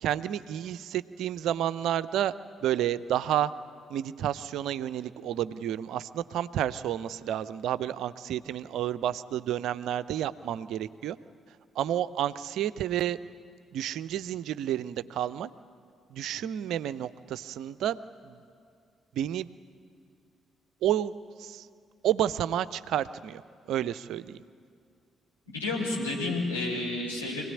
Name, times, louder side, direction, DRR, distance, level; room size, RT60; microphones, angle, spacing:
voice 1, 0.0-2.3 2.6-3.5 3.9-11.2 11.8-13.2 13.7-15.5 16.1-18.0 18.2-18.4 19.1-19.5 20.8-21.1 21.4-21.7 22.0-23.4 23.7-24.4, right 11 dB, 65° right, 15 dB, 0.6 m, -30 dB
voice 2, 25.5-27.5, left 2 dB, 90° left, -6 dB, 4.9 m, -30 dB
25.0 x 18.0 x 9.8 m, 2.3 s
figure-of-eight pair, 40°, 0 cm